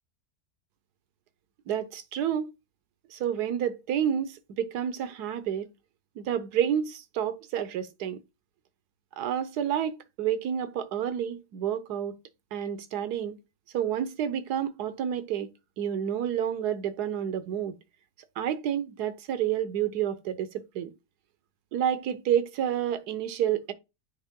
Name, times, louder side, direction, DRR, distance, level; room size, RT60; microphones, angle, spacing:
voice 1, 1.7-2.5 3.1-5.7 6.2-8.2 9.2-12.2 12.5-13.4 13.7-15.5 15.8-17.8 18.4-20.9 21.7-23.7, right 9 dB, 75° right, 1.3 m, -29 dB
9.3 x 3.4 x 3.7 m
omnidirectional pair, 1.8 m